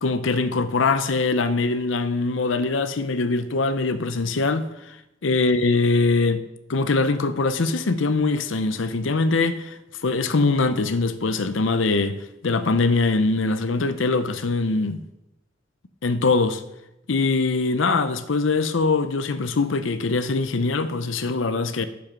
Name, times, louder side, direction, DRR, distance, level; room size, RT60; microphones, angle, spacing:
voice 1, 0.0-4.7 5.2-6.4 6.7-15.0 16.0-16.6 17.1-21.9, left 3 dB, 85° left, 0.7 m, -22 dB
7.6 x 7.3 x 5.5 m
head